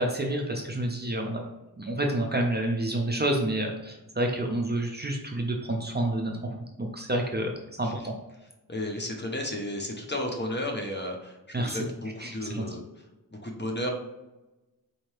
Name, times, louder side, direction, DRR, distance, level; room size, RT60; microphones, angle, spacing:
voice 1, 0.0-1.4 1.8-6.4 6.8-7.5 7.8-8.1 11.5-11.8 12.2-12.6, right 1 dB, 25° right, 1 dB, 0.5 m, -28 dB
voice 2, 8.7-13.0 13.4-13.9, left 1 dB, 30° left, 2 dB, 0.7 m, -33 dB
4.3 x 2.7 x 3.2 m, 1.0 s
wide cardioid pair, 95°, 38 cm